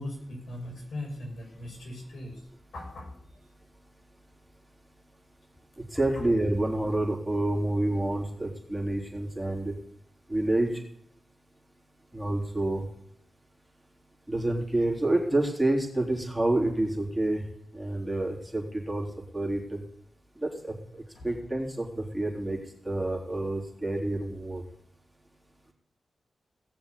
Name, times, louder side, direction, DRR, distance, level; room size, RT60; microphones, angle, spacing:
voice 1, 0.0-2.4 2.7-3.5 21.1-21.3, left 1 dB, 75° left, -1 dB, 6.3 m, -39 dB
voice 2, 5.9-9.7 10.3-10.7 12.1-12.8 14.3-17.4 17.7-19.1 19.3-19.8 20.4-20.8 21.2-22.6 22.8-24.6, right 1 dB, 10° right, -1 dB, 3.7 m, -28 dB
18.0 x 6.9 x 8.4 m, 0.71 s
cardioid pair, 60°, 0 cm